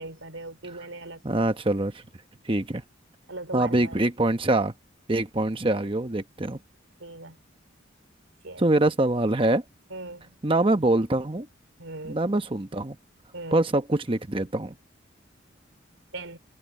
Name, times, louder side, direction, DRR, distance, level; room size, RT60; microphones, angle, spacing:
voice 1, 0.0-1.2 3.3-4.0 7.0-7.4 8.4-8.6 9.9-10.3 11.8-12.2 13.3-13.6 16.1-16.4, right 2 dB, 85° right, 3.8 m, -39 dB
voice 2, 1.2-2.0 2.4-2.8 3.5-4.7 5.1-6.6 8.6-9.6 10.4-11.5 12.0-13.0 13.5-14.7, right 2 dB, 25° right, 1.0 m, -24 dB
head